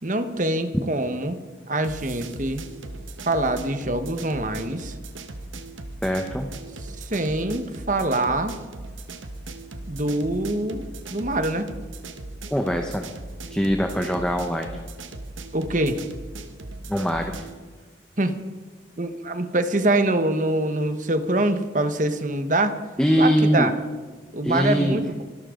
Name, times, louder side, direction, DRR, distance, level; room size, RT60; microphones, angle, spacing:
voice 1, 0.0-1.4 1.7-2.6 3.3-4.9 7.0-8.6 9.9-11.7 15.5-16.0 18.2-18.3 19.0-22.8 23.2-23.7 24.3-25.2, right 1 dB, 40° right, 9 dB, 1.2 m, -24 dB
sound 1, 1.8-17.6, right 2 dB, 80° right, 1.3 m, -38 dB
voice 2, 6.0-6.5 12.5-13.1 13.5-14.8 16.9-17.5 23.0-23.7 24.4-25.0, equal, 5° left, 3 dB, 1.0 m, -22 dB
25.5 x 12.5 x 3.9 m, 1.4 s
head